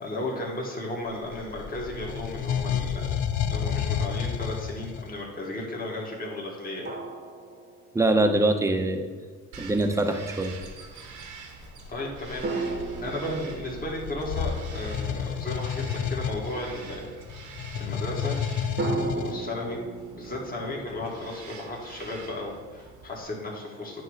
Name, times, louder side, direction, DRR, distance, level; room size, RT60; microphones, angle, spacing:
voice 1, 0.0-3.1 3.5-6.9 11.9-17.1 17.4-18.4 18.9-19.8 20.2-24.0, left 1 dB, 30° left, -2 dB, 1.8 m, -34 dB
sound 1, 1.1-5.2 10.5-10.7 11.5-19.3, left 8 dB, 70° left, 0.6 m, -31 dB
sound 2, 3.2-3.4 6.9-8.4 12.4-16.1 18.8-21.5, right 3 dB, 35° right, 1.0 m, -35 dB
voice 2, 7.9-9.1 9.6-10.5, right 2 dB, 10° right, 5 dB, 0.7 m, -23 dB
Bird vocalization bird call bird song, 9.5-23.2, right 5 dB, 80° right, 1.1 m, -47 dB
9.2 x 3.1 x 6.4 m, 1.6 s
cardioid pair, 90°, 30 cm